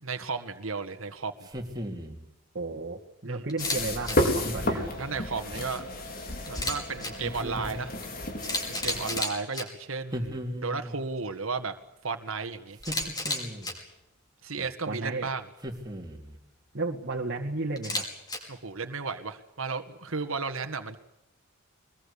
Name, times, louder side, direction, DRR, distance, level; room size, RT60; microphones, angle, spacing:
voice 1, 0.0-1.3 3.2-3.4 5.0-5.9 6.5-7.9 8.7-11.7 12.0-12.8 14.4-15.4 18.5-21.0, right 4 dB, 70° right, 7 dB, 1.9 m, -34 dB
sound 1, 1.4-2.3 4.4-5.0 7.2-8.0 10.1-11.0 12.8-13.8 15.6-16.4, equal, 20° right, 3.5 m, -37 dB
voice 2, 2.5-4.9 14.6-15.3 16.7-18.0, right 3 dB, 50° right, -1 dB, 2.2 m, -33 dB
Camera, 3.5-3.8 4.0-4.1 6.5-7.1 8.0-8.1 8.4-9.6 12.8-13.7 17.8-18.4, left 2 dB, 20° left, 5.6 m, -31 dB
sound 2, 3.6-9.2, left 1 dB, 45° left, 4.7 m, -32 dB
23.5 x 21.5 x 8.5 m, 0.86 s
head